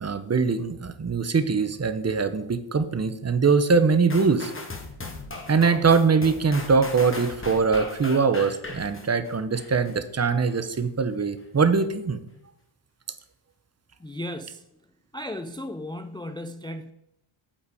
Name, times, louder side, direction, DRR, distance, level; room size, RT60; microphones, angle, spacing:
voice 1, 0.0-4.5 5.5-12.2, right 5 dB, 30° right, 11 dB, 0.9 m, -22 dB
sound 1, 4.1-9.9 10.5-10.6, left 2 dB, 25° left, 1.7 m, -38 dB
voice 2, 14.0-14.7 15.1-16.9, left 1 dB, 10° left, 7 dB, 0.4 m, -35 dB
8.6 x 8.0 x 4.9 m, 0.81 s
wide cardioid pair, 120°, 49 cm